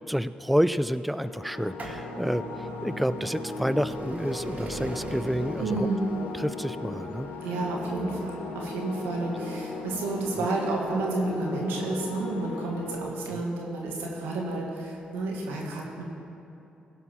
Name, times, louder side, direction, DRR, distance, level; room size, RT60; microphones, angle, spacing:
voice 1, 0.1-5.9 6.3-7.3 10.4-10.5 13.3-13.4, equal, ahead, 14 dB, 0.3 m, -29 dB
sound 1, 1.2-13.1, left 3 dB, 80° left, 0.9 m, -37 dB
sound 2, 1.5-13.1 13.9-14.0 15.0-15.1 15.3-15.4, right 2 dB, 50° right, 1.9 m, -42 dB
voice 2, 5.6-6.0 7.4-16.0, right 2 dB, 85° right, -1 dB, 1.8 m, -30 dB
16.5 x 5.5 x 5.8 m, 2.9 s
supercardioid pair, 50°, 4 cm